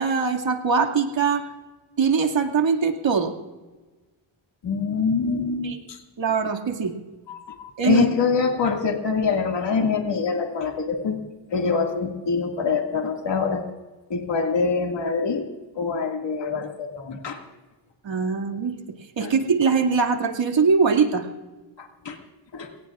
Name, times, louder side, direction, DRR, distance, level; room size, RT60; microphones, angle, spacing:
voice 1, 0.0-1.4 2.0-3.3 5.6-5.8 6.2-6.9 7.8-8.0 18.0-18.7 19.2-21.3, right 5 dB, 65° right, 2 dB, 2.4 m, -22 dB
voice 2, 4.6-6.0 7.3-11.2 11.5-13.6 14.1-15.5 15.8-17.4 19.2-19.3 21.8-22.2 22.5-22.7, left 5 dB, 60° left, 2 dB, 2.3 m, -25 dB
28.5 x 18.0 x 2.5 m, 1.2 s
cardioid pair, 65°, 49 cm